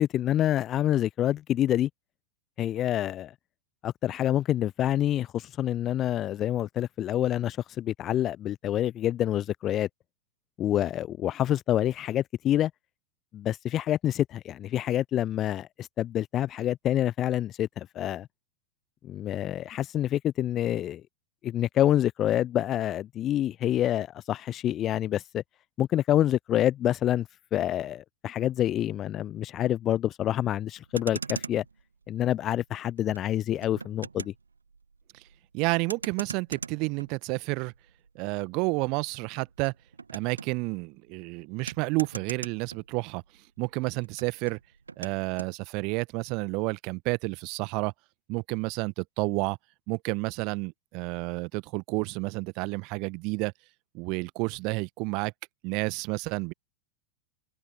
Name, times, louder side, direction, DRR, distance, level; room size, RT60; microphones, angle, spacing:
voice 1, 0.0-1.9 2.6-3.3 3.8-9.9 10.6-12.7 13.3-18.3 19.0-21.0 21.4-25.4 25.8-31.6 32.1-34.3, left 12 dB, 30° left, 0.4 m, -27 dB
Motor vehicle (road), 30.7-43.4 43.6-45.6, right 4 dB, 75° right, 2.4 m, -43 dB
voice 2, 35.5-37.7 38.1-39.7 40.1-43.2 43.6-44.6 45.0-47.9 48.3-49.6 49.9-53.5 53.9-55.3 55.6-56.5, right 28 dB, 45° right, 1.3 m, -30 dB
figure-of-eight pair, 90°, 0 cm